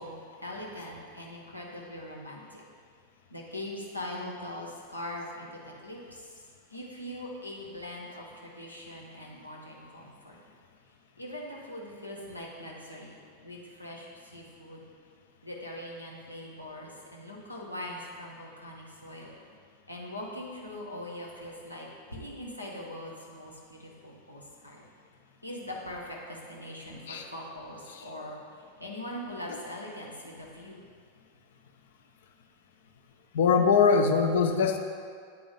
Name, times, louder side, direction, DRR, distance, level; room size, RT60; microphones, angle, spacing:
voice 1, 0.0-2.6 3.3-6.3 6.7-10.4 11.2-14.8 15.4-19.3 19.9-24.8 25.4-28.4 28.8-30.8, left 1 dB, 85° left, -3 dB, 1.0 m, -41 dB
voice 2, 33.3-34.8, left 5 dB, 60° left, 5 dB, 0.5 m, -22 dB
9.2 x 3.5 x 3.5 m, 2.1 s
figure-of-eight pair, 90°, 0 cm